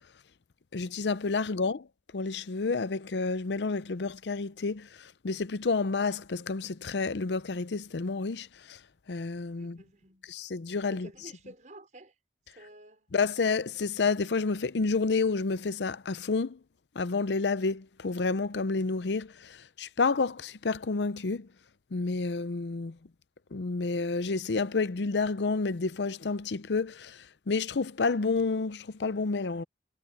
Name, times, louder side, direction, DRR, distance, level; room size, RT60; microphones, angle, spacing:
voice 1, 0.7-1.9 2.1-8.8 9.1-9.8 10.3-11.1 13.1-16.6 17.0-21.5 21.9-23.0 23.5-29.6, left 4 dB, 80° left, 0.6 m, -30 dB
voice 2, 9.6-10.3 10.9-12.1 12.6-13.1, right 1 dB, 45° right, 5.3 m, -51 dB
head